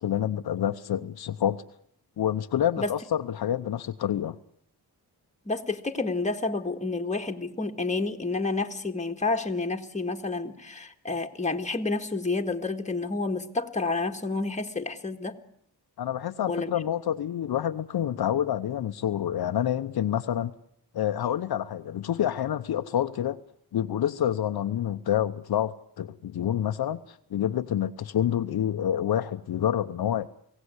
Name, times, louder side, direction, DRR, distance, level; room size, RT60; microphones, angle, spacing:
voice 1, 0.0-1.6 2.2-4.4 16.0-20.5 20.9-23.4 23.7-30.3, left 10 dB, 75° left, 0.9 m, -28 dB
voice 2, 5.5-15.4 16.5-16.8, left 3 dB, 20° left, 1.8 m, -29 dB
23.0 x 17.0 x 9.7 m
cardioid pair, 100°, 38 cm